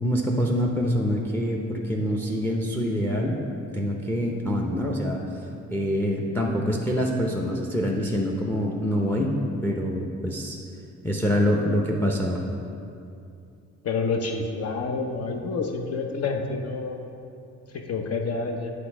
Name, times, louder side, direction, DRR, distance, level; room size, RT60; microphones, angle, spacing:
voice 1, 0.0-3.4 3.7-5.2 5.7-9.3 9.6-10.6 11.0-12.4, equal, 5° left, 0 dB, 0.6 m, -25 dB
voice 2, 13.8-17.0 17.7-18.7, left 4 dB, 55° left, 3 dB, 0.8 m, -28 dB
7.7 x 3.5 x 6.1 m, 2.5 s
cardioid pair, 90°, 30 cm